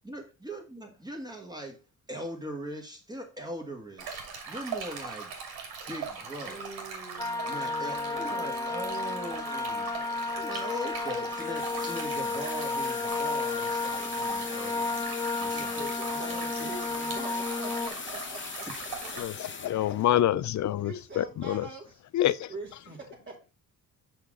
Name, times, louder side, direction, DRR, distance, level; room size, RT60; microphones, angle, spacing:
voice 1, 0.0-1.8 2.1-5.3 5.9-6.7 7.5-10.0 10.3-15.0 15.4-15.9 16.3-16.5 19.0-19.1, right 1 dB, 10° right, 1.5 m, -40 dB
Stream, 4.0-19.2, right 5 dB, 85° right, 2.5 m, -41 dB
voice 2, 6.4-8.7 9.7-9.8 15.5-19.2 20.8-22.0 22.5-23.5, right 2 dB, 30° right, 1.9 m, -44 dB
sound 1, 7.2-17.9, left 3 dB, 10° left, 0.8 m, -32 dB
sound 2, 8.4-20.2, left 5 dB, 30° left, 1.1 m, -41 dB
voice 3, 19.6-20.9 21.2-21.6 22.1-22.5, left 12 dB, 50° left, 0.5 m, -26 dB
5.9 x 5.8 x 3.7 m
cardioid pair, 95°, 36 cm